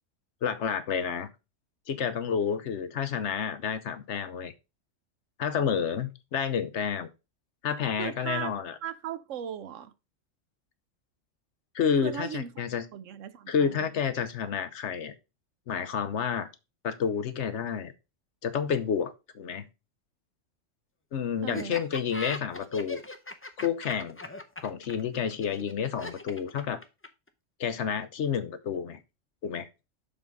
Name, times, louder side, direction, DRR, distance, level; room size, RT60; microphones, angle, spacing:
voice 1, 0.4-1.3 1.9-4.5 5.4-7.1 7.6-8.7 11.7-12.8 13.5-15.1 15.7-16.5 16.8-17.9 18.4-19.7 21.1-23.0 23.6-24.2 24.6-26.8 27.6-29.0 29.4-29.7, left 7 dB, 65° left, 1.0 m, -30 dB
voice 2, 8.0-8.5 8.8-9.9 12.0-12.5 12.9-13.9 21.4-21.8, right 9 dB, 80° right, 1.1 m, -37 dB
Laughter, 21.5-27.3, left 2 dB, 15° left, 0.4 m, -39 dB
7.0 x 3.7 x 5.2 m
omnidirectional pair, 1.3 m